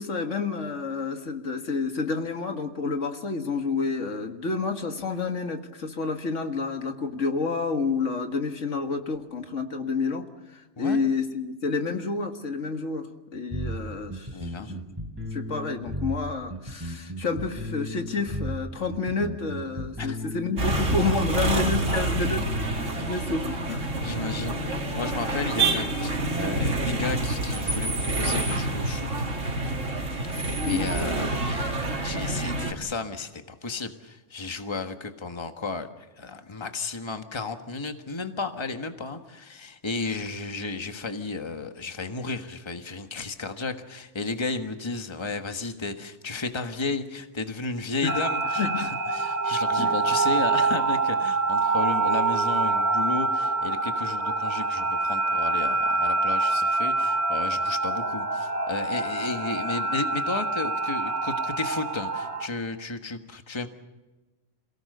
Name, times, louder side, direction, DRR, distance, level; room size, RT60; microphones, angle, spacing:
voice 1, 0.0-14.8 15.3-22.5 22.9-23.9 30.7-30.9 48.0-48.2 48.6-48.9 49.8-49.9, left 4 dB, 75° left, 5 dB, 2.1 m, -29 dB
sound 1, 13.5-23.1, right 1 dB, 20° right, 3.6 m, -35 dB
voice 2, 14.3-14.7 20.0-20.3 22.6-22.8 23.1-23.2 24.0-29.1 30.3-63.7, left 3 dB, 20° left, 6 dB, 1.4 m, -33 dB
sound 2, 20.6-32.7, right 2 dB, 80° right, 2.9 m, -27 dB
sound 3, 48.1-62.5, right 3 dB, 55° right, 2.3 m, -26 dB
28.0 x 18.0 x 6.7 m, 1.1 s
omnidirectional pair, 1.3 m